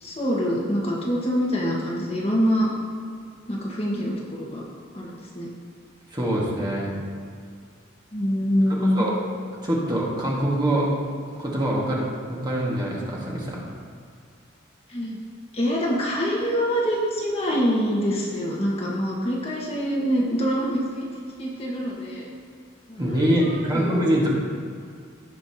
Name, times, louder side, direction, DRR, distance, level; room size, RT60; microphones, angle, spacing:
voice 1, 0.0-2.7 3.5-4.6 4.9-5.5 8.1-9.1 14.9-15.2 15.5-21.1 21.4-22.3 22.9-24.0, equal, 30° left, -4 dB, 1.5 m, -25 dB
voice 2, 6.1-7.0 8.7-9.2 9.6-10.9 11.4-13.6 23.0-24.3, right 1 dB, 20° right, -5 dB, 1.7 m, -24 dB
17.0 x 5.7 x 2.8 m, 2.2 s
head